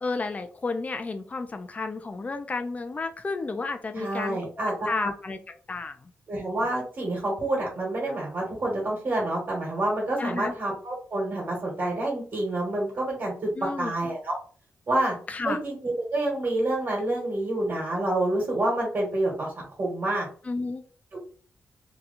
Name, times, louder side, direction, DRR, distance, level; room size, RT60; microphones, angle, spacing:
voice 1, 0.0-5.4 5.7-6.1 10.2-10.5 13.6-13.9 15.3-15.6 20.5-20.8, left 3 dB, 30° left, 7 dB, 0.5 m, -32 dB
voice 2, 3.9-5.1 6.3-13.5 13.8-14.4 14.9-15.1 15.4-20.3 21.1-21.2, right 1 dB, 50° right, -3 dB, 1.4 m, -28 dB
2.9 x 2.3 x 3.9 m, 0.43 s
wide cardioid pair, 125°, 5 cm